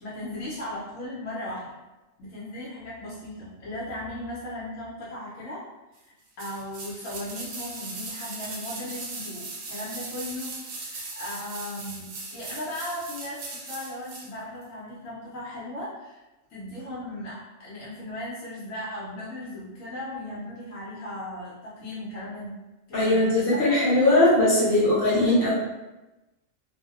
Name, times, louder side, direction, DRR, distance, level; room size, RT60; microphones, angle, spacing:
voice 1, 0.0-1.7 2.2-5.6 6.0-16.2 16.5-22.6 22.9-24.2 24.7-24.8 25.2-25.5, left 1 dB, 75° left, -8 dB, 1.0 m, -37 dB
sound 1, 6.4-14.3 14.6-14.7, right 3 dB, 80° right, 1.0 m, -38 dB
voice 2, 22.9-25.5, left 1 dB, 50° left, -8 dB, 0.9 m, -20 dB
2.6 x 2.0 x 2.3 m, 1.0 s
omnidirectional pair, 1.4 m